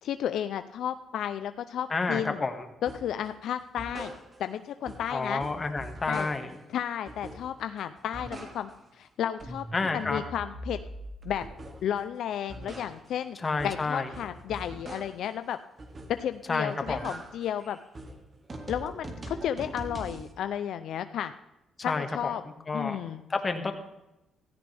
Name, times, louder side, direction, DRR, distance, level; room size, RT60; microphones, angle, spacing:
voice 1, 0.0-2.4 2.8-4.1 4.4-5.4 6.1-6.3 6.7-9.6 9.9-10.8 11.2-11.4 11.8-13.4 13.6-15.6 16.1-17.8 18.7-21.3 21.8-22.4 22.7-23.2, left 10 dB, 75° left, 10 dB, 0.6 m, -33 dB
voice 2, 1.9-2.7 5.1-6.5 9.7-10.2 13.4-14.1 16.5-17.0 21.8-22.3 22.7-23.0 23.3-23.7, left 3 dB, 30° left, 6 dB, 1.9 m, -29 dB
sound 1, 2.9-3.2 3.6-4.6 4.8-6.6 7.1-7.7 8.0-8.9 9.2-12.0 12.3-15.3 15.8-16.4 16.7-20.3, right 1 dB, 35° right, 2.4 m, -43 dB
16.0 x 15.0 x 3.5 m, 0.92 s
cardioid pair, 90°, 0 cm